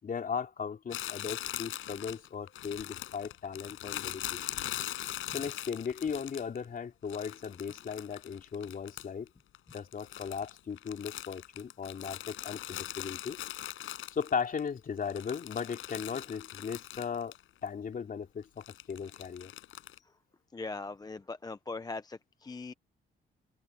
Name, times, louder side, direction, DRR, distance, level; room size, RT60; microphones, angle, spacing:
voice 1, 0.0-4.6 5.3-9.3 9.7-13.4 14.1-17.4 17.6-19.5, left 6 dB, 45° left, 3.8 m, -37 dB
Crumpling crinkling, 0.9-6.6 7.1-9.3 9.5-14.6 15.0-17.4 17.7-17.8 18.6-20.0, left 14 dB, 85° left, 6.4 m, -41 dB
voice 2, 20.5-22.7, left 3 dB, 20° left, 0.8 m, -40 dB
cardioid pair, 90°, 20 cm